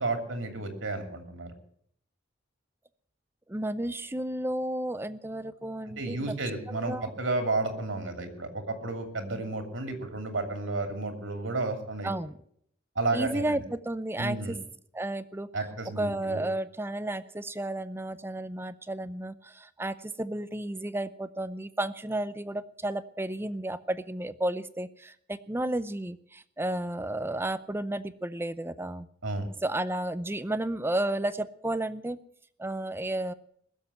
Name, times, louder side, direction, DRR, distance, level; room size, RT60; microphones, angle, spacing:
voice 1, 0.0-1.5 5.8-12.1 13.0-13.6 14.2-14.5 15.5-16.4 29.2-29.5, right 2 dB, 85° right, 5 dB, 2.8 m, -32 dB
voice 2, 3.5-6.2 6.7-7.1 12.0-12.4 13.1-14.6 14.9-15.5 16.0-29.1 29.6-32.2 32.6-33.3, right 1 dB, 10° right, 14 dB, 0.6 m, -32 dB
21.0 x 7.5 x 7.9 m, 0.66 s
head